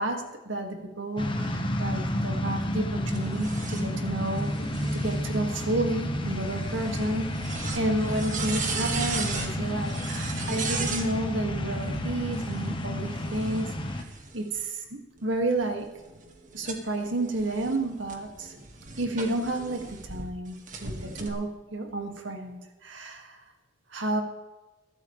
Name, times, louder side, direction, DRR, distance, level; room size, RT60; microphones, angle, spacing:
voice 1, 0.0-4.5 4.9-14.1 14.3-15.9 16.5-18.5 19.0-23.4 23.9-24.2, right 2 dB, 75° right, 3 dB, 2.3 m, -31 dB
sound 1, 1.2-14.0, left 1 dB, 25° left, 1.3 m, -31 dB
sound 2, 3.1-11.1 12.2-14.6 15.2-20.2 20.7-21.3, right 4 dB, 40° right, 2.0 m, -38 dB
22.5 x 12.5 x 3.3 m, 1.1 s
head